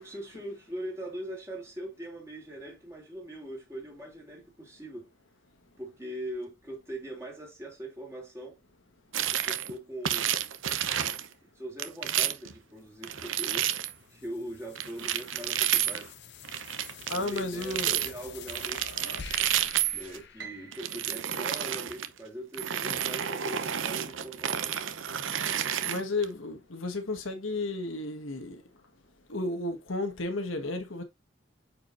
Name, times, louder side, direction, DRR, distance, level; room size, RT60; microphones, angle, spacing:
voice 1, 0.0-5.1 5.8-8.6 9.3-10.3 11.4-13.8 14.1-16.1 17.1-19.4 19.9-24.8, right 1 dB, 15° right, 3.0 m, -41 dB
sound 1, 9.1-9.7 10.0-11.3 11.8-12.5 13.0-13.9 14.8-16.1 16.4-18.1 18.5-20.2 20.7-22.1 22.5-26.2, right 10 dB, 80° right, 0.8 m, -30 dB
sound 2, 12.8-21.4, left 6 dB, 60° left, 0.8 m, -48 dB
voice 2, 17.1-18.0 25.8-28.6 29.3-31.0, left 2 dB, 90° left, 1.5 m, -33 dB
Piano, 20.4-22.6, right 6 dB, 60° right, 1.3 m, -49 dB
8.7 x 4.9 x 2.6 m
head